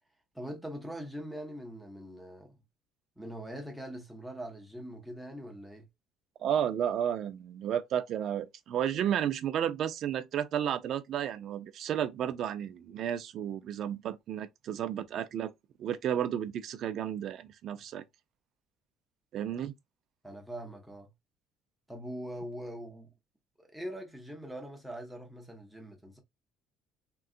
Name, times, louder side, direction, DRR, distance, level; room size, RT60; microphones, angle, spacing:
voice 1, 0.3-2.6 3.2-5.9 20.2-21.1 21.9-23.1 23.6-26.2, equal, ahead, 0.7 m, -42 dB
voice 2, 6.4-15.5 15.8-18.0 19.3-19.7, right 9 dB, 40° right, 0.4 m, -32 dB
3.7 x 2.3 x 2.4 m
cardioid pair, 180°, 0 cm